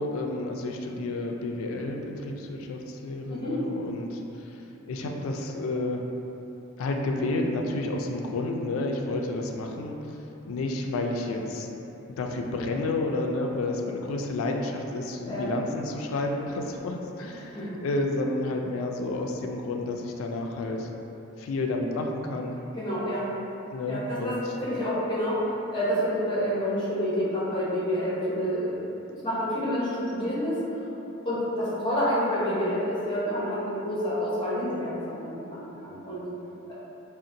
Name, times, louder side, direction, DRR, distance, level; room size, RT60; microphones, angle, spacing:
voice 1, 0.0-4.6 4.9-6.0 6.8-10.0 10.5-11.7 12.2-20.9 21.4-22.6 23.7-24.4, left 2 dB, 80° left, 2 dB, 0.3 m, -30 dB
voice 2, 22.7-23.3 23.8-24.4 24.6-29.0 29.2-30.6 31.2-36.2, equal, 25° left, -9 dB, 0.7 m, -28 dB
3.7 x 2.1 x 2.6 m, 3.0 s
head